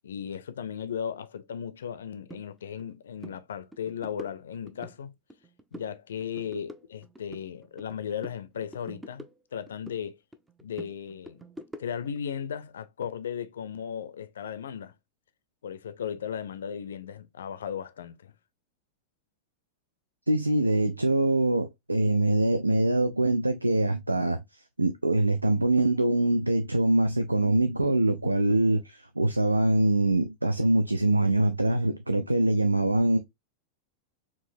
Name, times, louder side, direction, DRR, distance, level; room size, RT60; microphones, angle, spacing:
voice 1, 0.0-5.1 5.7-9.2 9.5-10.2 10.6-11.4 11.8-14.9 15.6-18.3, left 8 dB, 65° left, 0.4 m, -36 dB
sound 1, 2.3-2.4 2.8-2.9 3.2-3.4 3.7-5.0 5.3-5.9 6.2-8.0 8.2-10.0 10.3-12.2, right 1 dB, 10° right, 0.5 m, -46 dB
voice 2, 20.3-24.4 24.8-33.2, right 2 dB, 85° right, 0.4 m, -24 dB
4.5 x 2.9 x 2.6 m
figure-of-eight pair, 90°, 0 cm